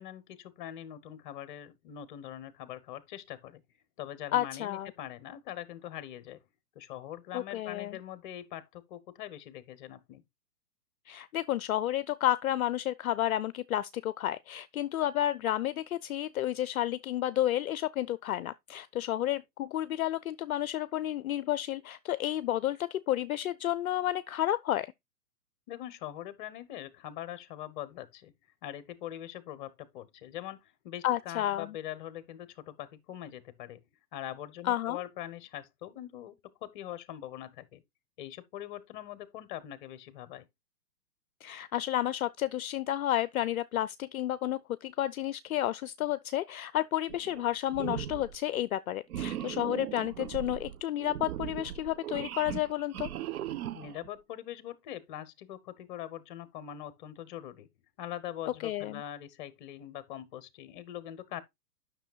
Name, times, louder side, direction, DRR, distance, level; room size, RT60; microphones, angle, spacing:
voice 1, 0.0-3.6 4.0-6.4 6.7-10.2 25.7-28.3 28.6-33.8 34.1-36.4 36.6-37.8 38.2-40.5 53.7-57.7 58.0-61.4, left 11 dB, 30° left, 0.9 m, -42 dB
voice 2, 4.3-4.9 7.3-8.0 11.1-24.9 31.0-31.7 34.6-35.0 41.4-53.1 58.6-59.0, left 13 dB, 60° left, 0.5 m, -31 dB
sound 1, 47.1-47.5 47.7-48.4 49.1-54.1, right 11 dB, 60° right, 0.6 m, -38 dB
10.5 x 6.2 x 2.2 m
hypercardioid pair, 140°, 49 cm